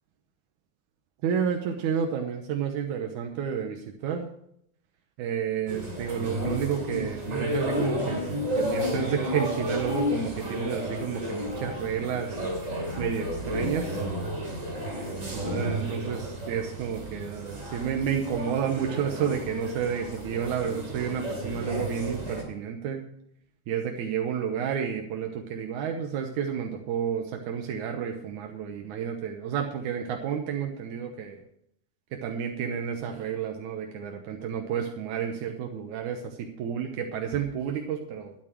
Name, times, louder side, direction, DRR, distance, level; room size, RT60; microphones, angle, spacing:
voice 1, 1.2-4.3 5.2-12.4 13.0-14.0 15.3-23.0 23.7-31.4 32.1-38.4, right 7 dB, 90° right, 3 dB, 2.5 m, -31 dB
sound 1, 5.7-22.4, equal, 25° right, 3.2 m, -32 dB
12.5 x 11.0 x 4.6 m, 0.71 s
omnidirectional pair, 3.3 m